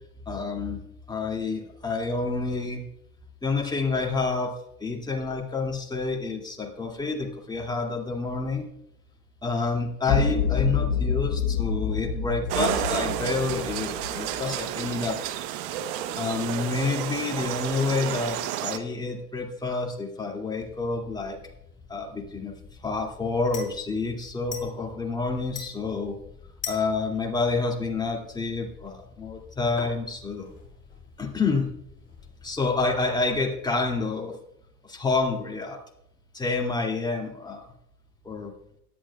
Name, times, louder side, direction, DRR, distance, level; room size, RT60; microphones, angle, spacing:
voice 1, 0.3-2.8 3.4-4.5 4.8-8.7 9.4-15.2 16.1-21.4 21.9-22.5 22.8-26.1 26.7-30.5 31.2-31.7 32.4-34.4 34.8-35.8 36.3-37.7 38.2-38.5, left 3 dB, 10° left, 0 dB, 2.3 m, -28 dB
sound 1, 10.1-14.4, left 6 dB, 50° left, 2.2 m, -27 dB
sound 2, 12.5-18.8, right 11 dB, 50° right, 1.1 m, -31 dB
sound 3, 20.6-33.4, left 6 dB, 25° left, 5.4 m, -45 dB
17.5 x 11.5 x 2.3 m, 0.79 s
figure-of-eight pair, 85°, 48 cm